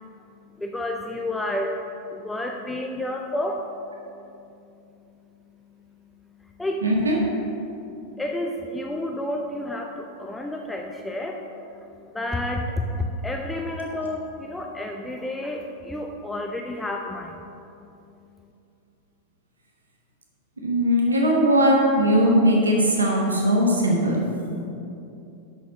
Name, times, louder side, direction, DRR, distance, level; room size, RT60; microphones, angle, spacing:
voice 1, 0.0-4.3 4.6-5.2 5.7-6.9 7.7-17.4 17.7-17.9, left 1 dB, 5° left, 2 dB, 0.5 m, -31 dB
voice 2, 6.8-7.2 20.6-24.2, equal, 75° right, -1 dB, 1.2 m, -19 dB
6.7 x 6.3 x 6.1 m, 2.7 s
figure-of-eight pair, 90°, 0 cm